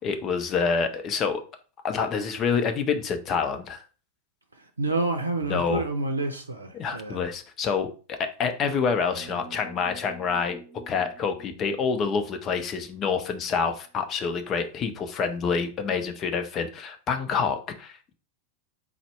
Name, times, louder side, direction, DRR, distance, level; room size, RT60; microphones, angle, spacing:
voice 1, 0.0-1.4 1.8-3.8 5.5-5.8 6.7-10.6 10.9-18.1, left 5 dB, 30° left, 0.6 m, -27 dB
voice 2, 4.6-7.2, right 2 dB, 80° right, 0.5 m, -29 dB
sound 1, 9.1-13.7, right 4 dB, 30° right, 1.0 m, -49 dB
4.1 x 2.1 x 4.4 m
figure-of-eight pair, 90°, 0 cm